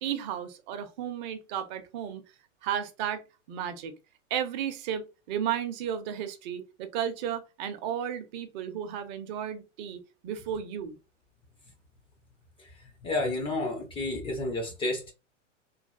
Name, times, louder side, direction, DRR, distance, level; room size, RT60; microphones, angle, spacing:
voice 1, 0.0-2.2 2.6-3.2 3.5-3.9 4.3-10.9, right 9 dB, 40° right, 0.5 m, -33 dB
voice 2, 13.0-15.1, left 2 dB, 15° left, 0.4 m, -30 dB
3.1 x 2.2 x 2.3 m
hypercardioid pair, 105°, 37 cm